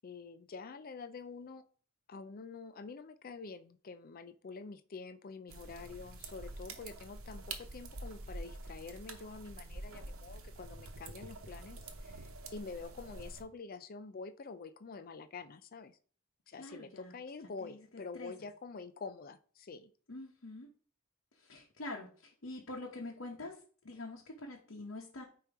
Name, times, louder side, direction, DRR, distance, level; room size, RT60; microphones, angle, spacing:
voice 1, 0.0-1.6 2.1-16.0 16.5-19.9, left 4 dB, 45° left, 12 dB, 0.4 m, -47 dB
sound 1, 5.5-13.4, right 2 dB, 80° right, 0.9 m, -47 dB
voice 2, 16.6-17.1 17.6-18.3 20.1-20.7 21.4-23.6 23.8-25.2, left 2 dB, 70° left, -2 dB, 1.1 m, -45 dB
8.9 x 3.0 x 4.7 m, 0.44 s
head